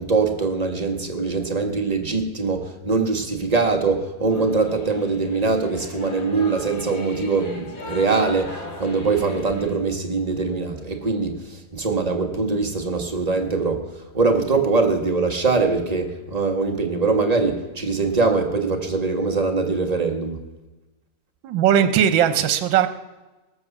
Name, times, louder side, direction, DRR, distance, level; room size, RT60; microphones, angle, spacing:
voice 1, 0.0-13.9 14.1-20.4, right 4 dB, 25° right, 3 dB, 1.3 m, -22 dB
Singing / Musical instrument, 4.3-9.8, left 2 dB, 70° left, 2.9 m, -37 dB
voice 2, 21.4-22.9, right 9 dB, 75° right, 9 dB, 1.5 m, -18 dB
20.0 x 7.1 x 7.0 m, 1.1 s
omnidirectional pair, 2.1 m